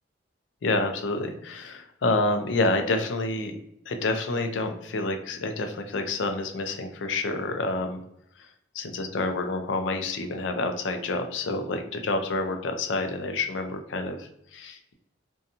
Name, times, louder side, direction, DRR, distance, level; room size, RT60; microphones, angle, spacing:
voice 1, 0.6-3.5 3.9-8.0 8.4-8.5 8.7-14.9, left 2 dB, 75° left, 6 dB, 0.4 m, -28 dB
2.6 x 2.2 x 2.7 m, 0.78 s
head